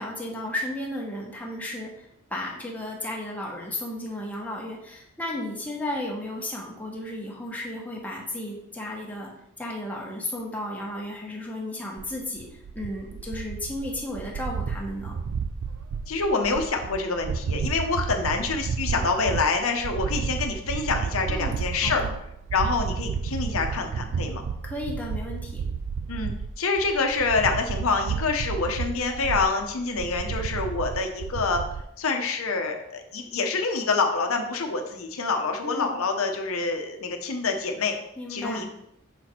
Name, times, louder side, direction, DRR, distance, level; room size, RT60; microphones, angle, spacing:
voice 1, 0.0-1.9 2.3-9.3 9.6-12.5 12.7-15.2 21.3-22.2 24.6-25.6 35.6-36.0 38.2-38.6, left 1 dB, 5° left, -3 dB, 1.1 m, -34 dB
sound 1, 12.0-31.8, right 6 dB, 85° right, 0.4 m, -32 dB
voice 2, 16.1-22.0 22.5-24.4 26.1-31.6 32.0-38.0 38.3-38.7, left 4 dB, 85° left, 4 dB, 0.8 m, -26 dB
6.2 x 4.2 x 4.4 m, 0.79 s
head